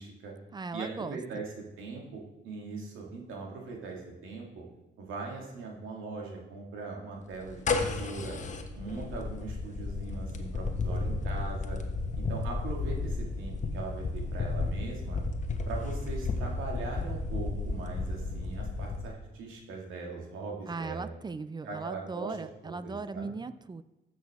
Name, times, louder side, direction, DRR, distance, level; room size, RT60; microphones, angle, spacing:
voice 1, 0.0-0.3 0.7-4.6 5.0-8.4 8.8-11.8 12.2-15.2 15.7-21.1 21.6-22.4 22.6-23.3, right 4 dB, 90° right, -1 dB, 2.2 m, -40 dB
voice 2, 0.5-1.4 20.7-23.8, right 4 dB, 20° right, 13 dB, 0.4 m, -38 dB
sound 1, 7.3-19.1, left 3 dB, 40° left, 1.1 m, -33 dB
14.5 x 6.2 x 3.6 m, 0.98 s
cardioid pair, 90°, 20 cm